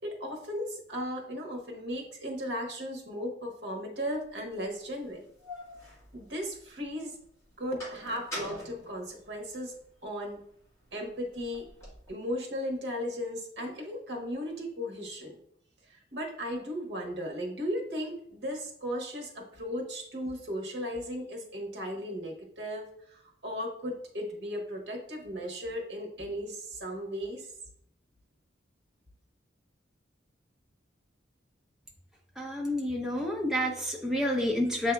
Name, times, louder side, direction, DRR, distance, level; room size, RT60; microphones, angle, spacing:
voice 1, 0.0-5.3 6.1-7.2 7.6-9.7 10.0-10.4 10.9-11.7 12.1-15.4 15.9-27.5, equal, 60° right, 0 dB, 1.1 m, -36 dB
sound 1, 4.3-4.4 5.0-6.9 7.2-9.9 10.3-12.1, left 1 dB, 15° left, 1.5 m, -44 dB
voice 2, 32.4-34.9, left 1 dB, 5° right, -1 dB, 0.6 m, -29 dB
7.8 x 2.7 x 2.3 m, 0.69 s
head